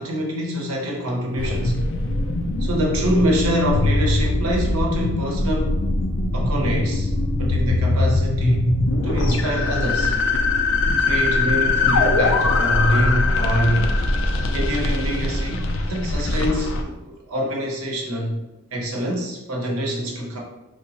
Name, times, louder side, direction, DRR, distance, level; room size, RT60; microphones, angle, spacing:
voice 1, 0.0-1.7 2.6-5.8 6.3-8.7 9.0-10.1 11.0-13.9 14.5-18.4 18.7-20.4, equal, 75° right, -1 dB, 1.0 m, -25 dB
sound 1, 1.4-16.8, left 2 dB, 55° left, 0.5 m, -21 dB
5.4 x 3.2 x 2.8 m, 1.0 s
head